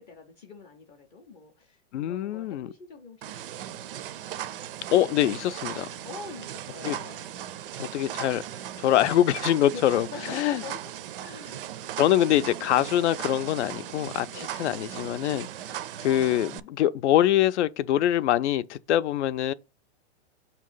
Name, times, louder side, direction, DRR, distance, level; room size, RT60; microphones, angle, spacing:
voice 1, 0.0-3.8 6.0-7.3 9.7-10.8 11.2-11.6 14.3-14.5 15.6-15.9, left 4 dB, 20° left, 0.4 m, -44 dB
voice 2, 1.9-2.7 4.9-5.9 6.8-6.9 7.8-8.4 8.8-10.6 12.0-14.3 14.6-15.5 16.0-19.5, left 12 dB, 75° left, 0.6 m, -24 dB
sound 1, 3.2-16.6, right 11 dB, 55° right, 0.4 m, -38 dB
6.6 x 2.9 x 5.4 m
hypercardioid pair, 155°, 34 cm